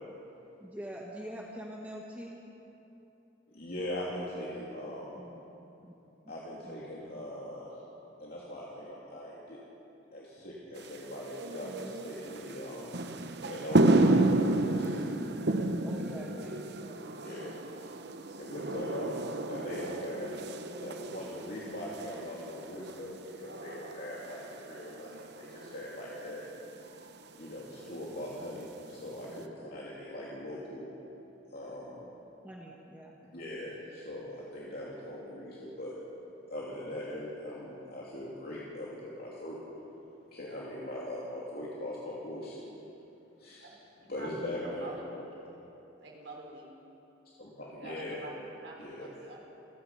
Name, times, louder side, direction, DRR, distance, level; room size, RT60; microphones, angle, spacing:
voice 1, 0.6-2.4 5.1-5.5 5.8-5.9 6.6-6.8 11.6-12.0 15.8-17.6 29.3-29.8 32.4-33.2 44.2-44.5, equal, 10° right, -2 dB, 1.6 m, -45 dB
voice 2, 3.5-5.2 6.3-7.8 8.2-9.6 10.1-12.9 13.5-15.1 17.2-17.5 18.4-26.4 27.4-30.9 31.5-32.1 33.3-36.0 36.5-39.6 40.3-42.6 43.4-43.7 44.1-45.2 47.4-48.2 48.8-49.1, left 1 dB, 55° left, -6 dB, 3.0 m, -41 dB
sound 1, 10.8-29.4, right 2 dB, 60° right, 1.0 m, -32 dB
voice 3, 44.0-45.1 46.0-46.7 47.6-49.4, right 2 dB, 85° right, -2 dB, 4.9 m, -47 dB
28.5 x 16.0 x 5.7 m, 3.0 s
head